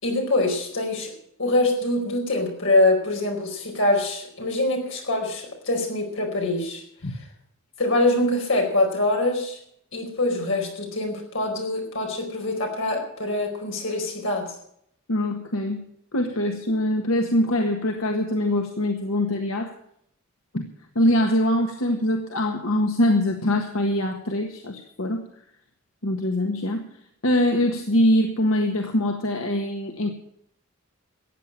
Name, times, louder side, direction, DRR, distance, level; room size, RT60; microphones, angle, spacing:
voice 1, 0.0-1.1 1.4-6.8 7.8-9.6 9.9-14.5, left 2 dB, 65° left, 1 dB, 4.6 m, -24 dB
voice 2, 15.1-15.8 16.1-19.7 20.5-20.6 20.9-25.2 26.0-26.8 27.2-30.1, left 1 dB, 85° left, 3 dB, 1.5 m, -23 dB
14.5 x 9.0 x 8.5 m, 0.71 s
head